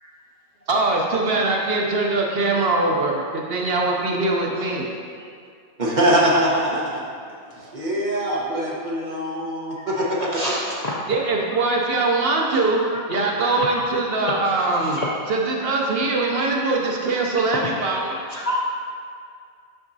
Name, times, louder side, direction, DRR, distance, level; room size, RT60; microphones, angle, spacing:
voice 1, 0.7-4.9 11.1-12.8 13.1-15.0 15.3-18.2, right 3 dB, 65° right, -1 dB, 0.8 m, -22 dB
voice 2, 5.8-7.0 7.5-10.4, right 1 dB, 45° right, -5 dB, 1.1 m, -22 dB
voice 3, 10.2-11.1 12.5-12.6 13.6-13.8 14.3-15.1 17.4-17.5 17.7-17.9 18.3-18.7, left 1 dB, 50° left, -4 dB, 0.5 m, -28 dB
6.1 x 5.9 x 2.7 m, 2.3 s
omnidirectional pair, 1.2 m